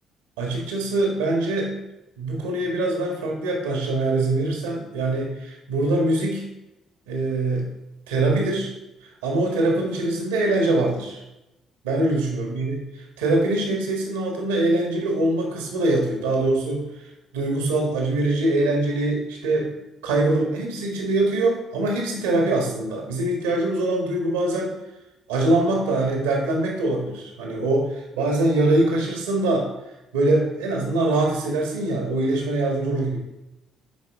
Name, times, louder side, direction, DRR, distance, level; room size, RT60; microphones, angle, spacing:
voice 1, 0.4-1.8 2.2-6.4 7.1-7.7 8.1-8.7 9.2-11.2 11.8-16.8 17.3-19.7 20.0-24.7 25.3-29.7 30.1-33.2, right 2 dB, 80° right, 0 dB, 1.6 m, -23 dB
11.0 x 4.8 x 3.6 m, 0.94 s
hypercardioid pair, 45°, 0 cm